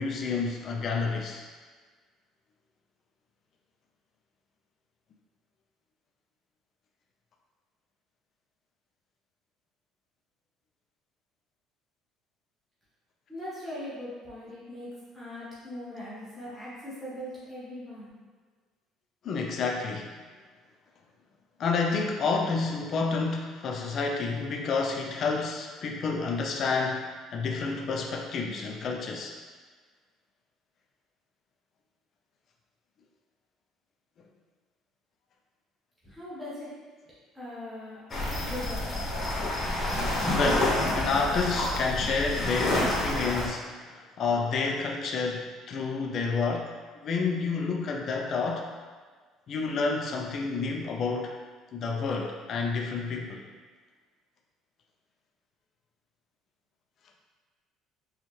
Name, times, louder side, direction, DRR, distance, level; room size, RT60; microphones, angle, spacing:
voice 1, 0.0-1.4 19.2-20.1 21.6-27.0 27.3-29.3 40.3-46.7 47.0-48.7 49.5-51.3 51.7-53.4, left 4 dB, 45° left, 1 dB, 0.4 m, -29 dB
voice 2, 13.3-14.9 15.1-18.1 36.0-36.7 37.3-38.0 38.4-38.8, left 1 dB, ahead, -10 dB, 1.0 m, -40 dB
sound 1, 38.1-43.5, left 1 dB, 25° left, 0.9 m, -28 dB
4.2 x 2.3 x 3.1 m, 1.5 s
cardioid pair, 140°, 0 cm